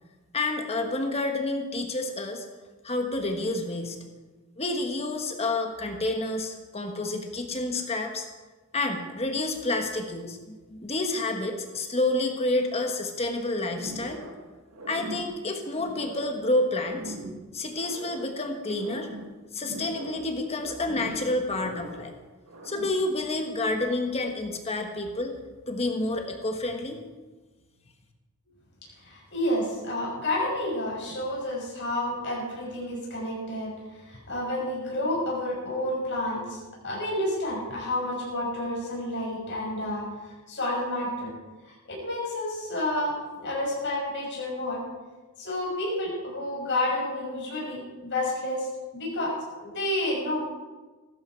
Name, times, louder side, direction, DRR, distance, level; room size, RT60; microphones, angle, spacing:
voice 1, 0.3-2.4 2.8-4.0 4.6-8.3 8.7-14.2 14.9-17.2 17.5-19.1 19.5-22.1 22.6-25.3 25.7-27.0, left 2 dB, 30° left, 4 dB, 1.4 m, -29 dB
sound 1, 13.7-14.5 14.7-16.4 16.7-18.4 18.7-20.3 20.6-22.1 22.5-23.1, right 1 dB, 85° right, 2.1 m, -41 dB
voice 2, 29.0-36.6 36.8-40.1 40.5-41.3 41.6-44.8 45.4-48.7 48.9-49.3 49.6-50.4, left 1 dB, 55° left, -3 dB, 5.9 m, -30 dB
16.0 x 13.0 x 4.6 m, 1.3 s
head